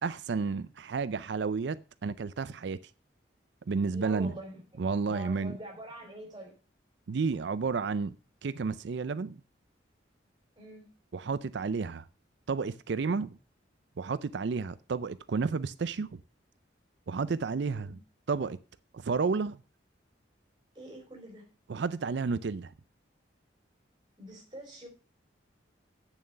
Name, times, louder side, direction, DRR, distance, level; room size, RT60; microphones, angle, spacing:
voice 1, 0.0-2.8 3.7-4.3 4.8-5.6 7.1-8.1 8.4-9.4 11.1-12.1 12.5-13.4 14.0-16.2 17.1-18.0 18.3-18.6 18.9-19.6 21.7-22.7, right 4 dB, 65° right, 0.4 m, -31 dB
voice 2, 3.8-4.6 5.1-6.5 10.6-10.9 17.7-18.0 20.7-21.5 24.2-24.9, right 1 dB, 25° right, 4.3 m, -45 dB
8.8 x 7.2 x 6.7 m
head